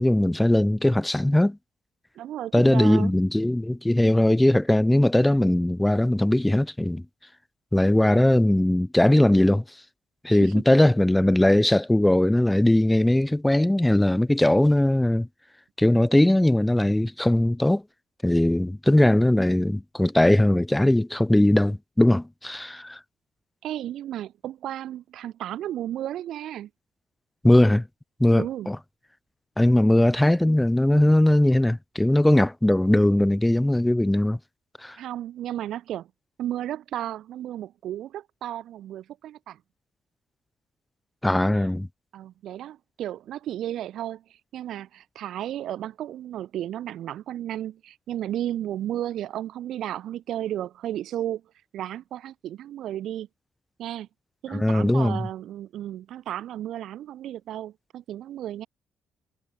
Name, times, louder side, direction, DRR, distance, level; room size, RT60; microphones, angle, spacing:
voice 1, 0.0-1.6 2.5-7.0 7.7-9.6 10.2-15.3 15.8-17.8 18.2-23.0 27.4-27.8 28.2-28.8 29.6-34.4 34.8-35.0 41.2-41.9 54.5-55.3, left 1 dB, 10° left, 0.6 m, -20 dB
voice 2, 2.1-3.1 10.3-10.8 23.6-26.7 28.4-28.7 35.0-36.1 36.4-39.6 41.5-41.7 42.1-51.4 51.7-53.3 53.8-54.1 54.4-58.7, right 12 dB, 75° right, 1.4 m, -33 dB
cardioid pair, 90°, 0 cm